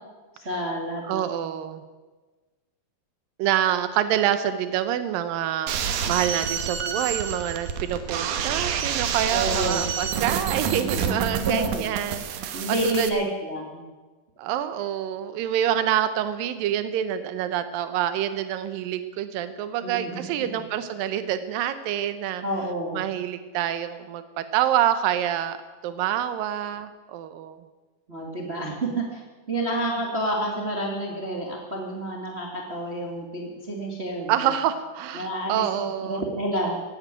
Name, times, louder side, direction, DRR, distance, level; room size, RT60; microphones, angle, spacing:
voice 1, 0.3-1.5 9.3-9.9 10.7-11.0 11.4-11.8 12.5-13.8 19.8-20.2 22.4-23.0 28.1-29.2 29.5-34.5 35.1-36.8, right 1 dB, 35° right, -1 dB, 0.9 m, -29 dB
voice 2, 1.1-1.8 3.4-13.3 14.4-22.4 22.9-25.6 25.8-27.6 34.3-36.2, right 10 dB, 85° right, 11 dB, 2.0 m, -27 dB
sound 1, 5.7-13.1, right 7 dB, 70° right, 2.0 m, -28 dB
17.5 x 9.0 x 8.9 m, 1.3 s
omnidirectional pair, 5.1 m